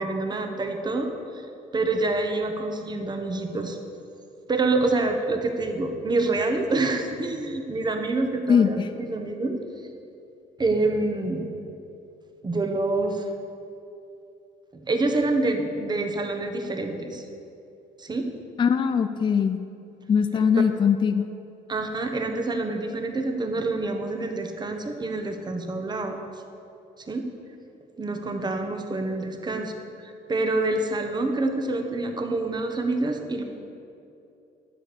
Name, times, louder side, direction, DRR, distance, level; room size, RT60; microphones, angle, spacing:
voice 1, 0.0-1.4 1.7-3.8 4.5-8.8 9.1-9.6 10.6-11.5 12.4-13.3 14.7-17.2 18.0-18.3 20.3-20.5 21.7-26.2 27.1-27.3 28.0-29.7 30.0-33.4, right 2 dB, 25° right, 5 dB, 1.3 m, -27 dB
voice 2, 8.5-8.9 18.6-19.6 20.1-21.3, left 6 dB, 30° left, 9 dB, 0.4 m, -21 dB
12.5 x 5.1 x 8.5 m, 2.7 s
cardioid pair, 110°, 17 cm